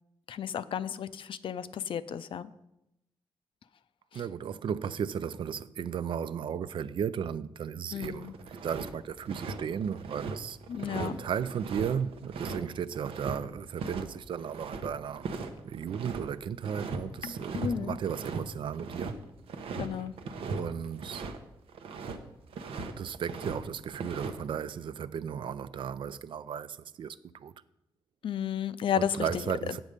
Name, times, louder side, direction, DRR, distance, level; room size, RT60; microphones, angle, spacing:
voice 1, 0.3-2.5 7.9-8.3 10.7-11.2 17.2-18.0 19.8-20.1 28.2-29.4, left 8 dB, 65° left, 0.4 m, -33 dB
voice 2, 4.1-10.6 10.9-15.3 15.6-19.2 20.4-21.3 23.0-27.5 29.2-29.8, right 8 dB, 60° right, 0.4 m, -35 dB
sound 1, 8.0-8.9 9.2-13.4 13.8-14.0 14.3-16.2 16.6-17.0 17.3-17.7 18.0-21.4 21.7-22.2 22.5-23.6 23.9-24.4, right 4 dB, 90° right, 0.8 m, -38 dB
8.0 x 7.3 x 5.1 m
cardioid pair, 110°, 9 cm